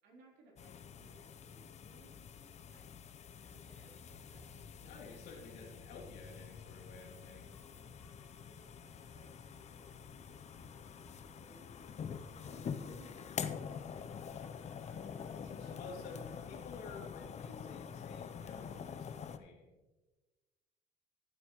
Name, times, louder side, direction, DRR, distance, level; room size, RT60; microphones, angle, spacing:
voice 1, 0.0-2.2 2.7-2.9 3.4-5.2 7.8-9.3 9.6-12.0 12.2-16.6, right 2 dB, 80° right, -3 dB, 3.5 m, -64 dB
sound 1, 0.6-19.4, left 7 dB, 40° left, 0.7 m, -46 dB
sound 2, 3.6-17.6, left 2 dB, 5° left, 3.8 m, -65 dB
voice 2, 4.8-7.7 15.8-19.8, left 4 dB, 80° left, -2 dB, 2.7 m, -52 dB
14.5 x 8.3 x 3.1 m, 1.2 s
cardioid pair, 110°, 17 cm